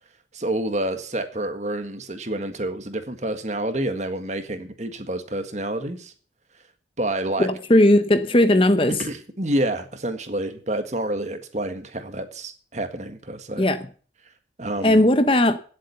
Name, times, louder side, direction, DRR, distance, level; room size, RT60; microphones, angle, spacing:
voice 1, 0.3-6.1 7.0-7.5 8.9-13.7 14.6-15.0, right 1 dB, 40° right, 1.7 m, -28 dB
voice 2, 7.4-9.0 13.6-13.8 14.8-15.6, left 1 dB, 30° left, 0.9 m, -17 dB
16.5 x 7.7 x 7.0 m
head